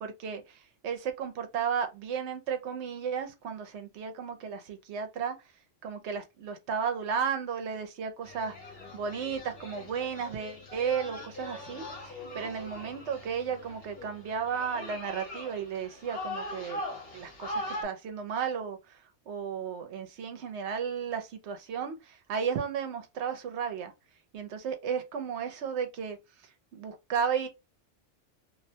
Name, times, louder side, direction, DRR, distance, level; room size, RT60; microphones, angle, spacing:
voice 1, 0.0-5.4 5.8-16.8 17.1-19.0 19.3-23.9 24.3-26.2 26.7-27.5, right 7 dB, 70° right, 0.8 m, -34 dB
sound 1, 8.2-17.8, left 1 dB, 55° left, 1.2 m, -41 dB
2.5 x 2.1 x 2.7 m
omnidirectional pair, 1.3 m